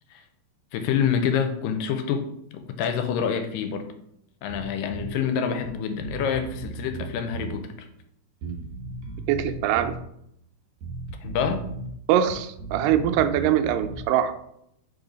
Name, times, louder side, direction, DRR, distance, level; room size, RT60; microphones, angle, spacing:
voice 1, 0.7-2.3 2.5-3.9 4.4-7.9 11.2-11.6, left 7 dB, 85° left, 7 dB, 2.3 m, -27 dB
Bass guitar, 4.5-5.2 5.6-5.7 6.0-7.6 8.4-10.0 10.8-11.9 12.2-14.1, right 3 dB, 65° right, 1.9 m, -36 dB
voice 2, 9.3-9.9 12.1-14.3, right 10 dB, 85° right, 8 dB, 2.2 m, -22 dB
4.8 x 3.9 x 5.0 m, 0.76 s
omnidirectional pair, 3.9 m